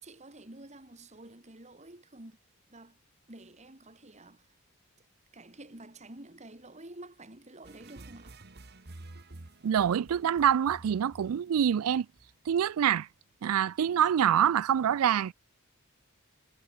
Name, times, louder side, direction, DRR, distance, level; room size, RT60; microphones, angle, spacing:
voice 1, 0.0-2.4 2.7-3.0 3.3-4.5 5.3-8.4, right 2 dB, 30° right, 2.4 m, -49 dB
sound 1, 7.6-12.7, right 2 dB, 50° right, 1.3 m, -50 dB
voice 2, 9.6-12.1 12.5-13.1 13.4-15.3, right 9 dB, 80° right, 0.4 m, -25 dB
head